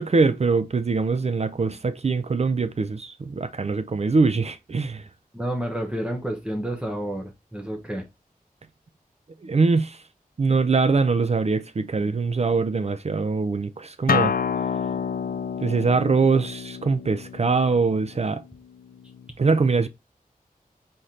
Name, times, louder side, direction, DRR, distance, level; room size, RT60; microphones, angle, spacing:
voice 1, 0.0-5.0 9.4-10.0 10.4-14.3 15.6-18.4 19.4-19.9, right 4 dB, 45° right, 0.4 m, -23 dB
voice 2, 5.3-8.0, right 1 dB, 5° right, 0.9 m, -30 dB
Acoustic guitar, 14.1-19.3, left 6 dB, 75° left, 0.4 m, -29 dB
4.2 x 3.2 x 3.8 m
wide cardioid pair, 75°, 15 cm